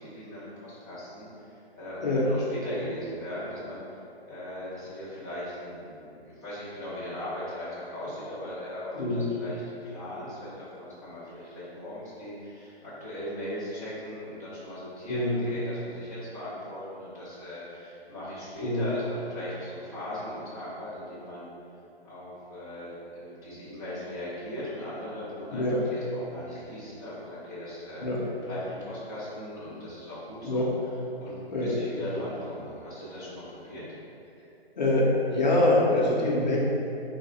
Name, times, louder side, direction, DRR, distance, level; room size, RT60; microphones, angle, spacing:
voice 1, 0.0-3.8 4.2-21.5 22.0-28.1 28.4-33.9, left 1 dB, 20° right, -15 dB, 0.4 m, -39 dB
voice 2, 8.9-9.3 15.1-15.5 18.6-18.9 25.5-25.8 28.0-28.2 30.4-30.7 31.5-31.7 34.8-36.6, left 1 dB, 45° left, -4 dB, 0.5 m, -24 dB
3.1 x 2.0 x 3.7 m, 2.7 s
hypercardioid pair, 160°, 32 cm